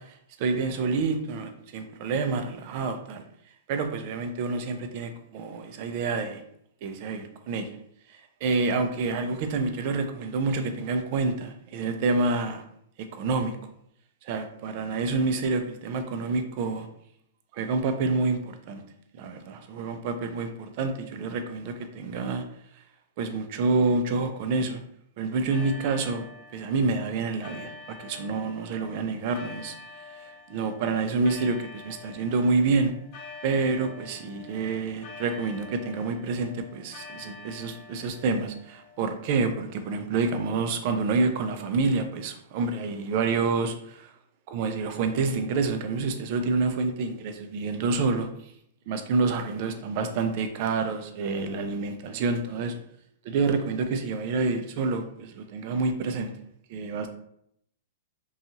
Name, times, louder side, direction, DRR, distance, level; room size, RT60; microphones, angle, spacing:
voice 1, 0.4-3.3 3.7-6.4 6.8-7.8 8.1-12.6 13.0-13.6 14.2-16.9 17.5-18.8 19.2-22.4 23.2-24.8 25.2-27.7 28.0-29.7 30.1-32.9 33.4-44.1 44.5-48.5 48.9-52.8 53.2-56.3 56.7-57.1, right 4 dB, 45° right, 7 dB, 0.4 m, -28 dB
sound 1, 25.5-39.4, left 3 dB, 35° left, 0.7 m, -46 dB
2.7 x 2.3 x 2.7 m, 0.71 s
hypercardioid pair, 140°, 0 cm